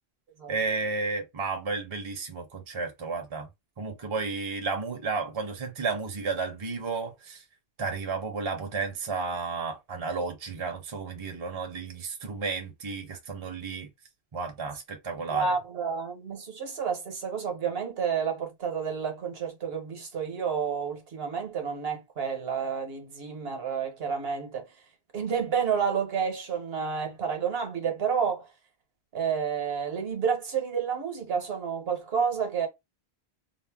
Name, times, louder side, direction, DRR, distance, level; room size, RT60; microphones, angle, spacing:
voice 1, 0.5-3.5 3.8-7.4 7.8-13.9 14.3-15.5, right 4 dB, 35° right, 0.7 m, -32 dB
voice 2, 15.3-24.7 25.1-28.5 29.1-32.7, right 6 dB, 70° right, 1.1 m, -30 dB
2.5 x 2.1 x 3.3 m
omnidirectional pair, 1.1 m